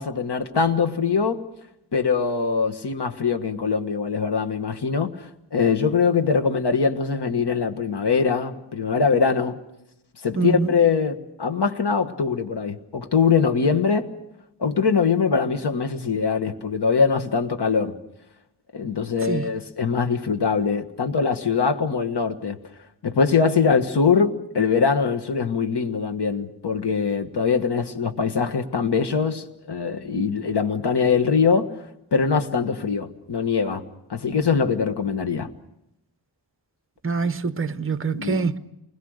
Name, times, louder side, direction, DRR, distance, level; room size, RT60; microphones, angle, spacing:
voice 1, 0.0-1.4 1.9-9.6 10.2-14.1 14.6-18.0 18.7-22.6 23.0-31.7 32.1-33.8 34.1-35.5 38.1-38.4, left 5 dB, 65° left, 1.6 m, -22 dB
voice 2, 10.4-10.7 19.3-19.5 37.0-38.6, right 4 dB, 30° right, 0.8 m, -24 dB
28.5 x 21.0 x 6.5 m
wide cardioid pair, 110°, 44 cm